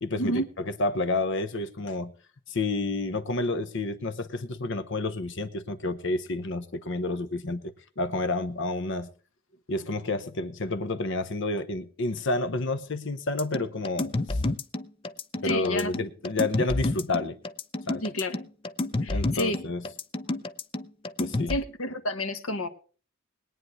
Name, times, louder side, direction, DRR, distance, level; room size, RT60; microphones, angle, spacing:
voice 1, 0.0-0.4 0.8-2.1 2.5-9.1 9.7-14.4 15.4-17.4 17.9-18.0 19.1-19.8 21.2-21.5, left 2 dB, 60° left, 0.9 m, -30 dB
sound 1, 13.4-21.6, left 2 dB, 25° left, 0.5 m, -29 dB
voice 2, 15.4-15.9 18.0-18.4 19.0-19.6 21.5-22.7, left 1 dB, 80° left, 1.4 m, -29 dB
21.0 x 9.4 x 3.2 m
head